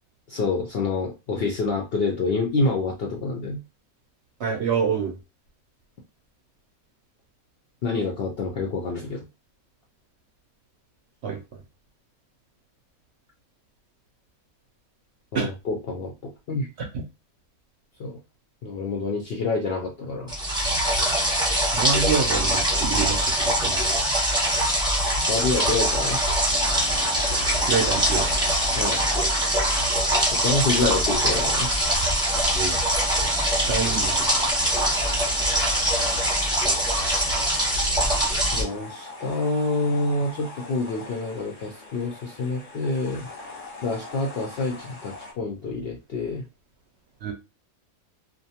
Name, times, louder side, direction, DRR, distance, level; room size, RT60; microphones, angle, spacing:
voice 1, 0.3-3.6 7.8-9.2 15.3-16.7 18.0-18.2 18.6-20.3 25.3-26.2 28.8-29.0 30.3-31.7 38.5-43.3 43.8-46.4, left 3 dB, 70° left, -1 dB, 0.6 m, -27 dB
voice 2, 4.4-5.2 11.2-11.4 15.3-15.5 16.9-17.0 21.7-23.9 27.7-28.3 30.8-30.9 32.5-32.8 33.7-34.4 47.2-47.3, right 6 dB, 65° right, 2 dB, 0.7 m, -27 dB
sound 1, 20.3-38.6, right 1 dB, 5° right, 0.8 m, -23 dB
sound 2, 26.5-45.3, left 2 dB, 35° left, 0.7 m, -40 dB
2.5 x 2.1 x 2.7 m, 0.27 s
omnidirectional pair, 1.5 m